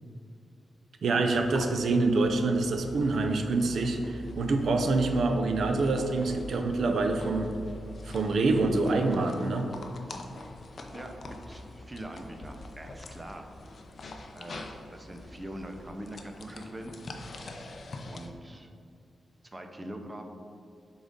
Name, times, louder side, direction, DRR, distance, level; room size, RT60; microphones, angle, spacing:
voice 1, 1.0-7.5 8.0-9.7, right 3 dB, 65° right, 5 dB, 0.5 m, -26 dB
sound 1, 1.4-18.3, left 1 dB, 45° left, 0.5 m, -44 dB
voice 2, 10.9-13.5 14.3-16.9 18.0-18.7 19.4-20.2, right 1 dB, 15° right, 5 dB, 0.5 m, -43 dB
6.9 x 3.9 x 3.7 m, 2.3 s
wide cardioid pair, 150°, 0 cm